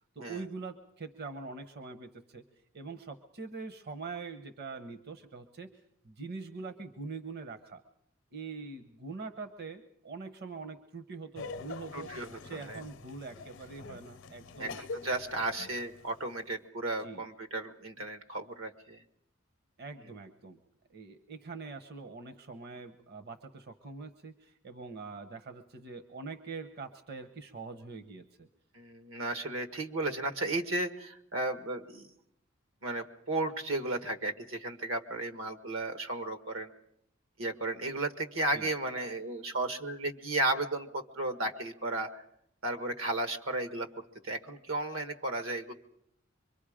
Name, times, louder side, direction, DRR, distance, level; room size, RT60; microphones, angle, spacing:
voice 1, 0.1-2.4 2.7-5.7 6.0-7.8 8.3-12.1 12.4-14.8 17.0-17.2 19.8-20.6 20.9-28.5 38.5-38.7, right 4 dB, 55° right, 11 dB, 0.9 m, -43 dB
Laughter, 11.4-16.4, left 4 dB, 70° left, 0.7 m, -45 dB
voice 2, 11.9-12.8 14.6-19.0 28.7-32.1 32.8-36.7 37.4-42.2 42.6-45.7, right 2 dB, 85° right, 8 dB, 1.5 m, -34 dB
24.5 x 22.5 x 5.0 m, 0.77 s
head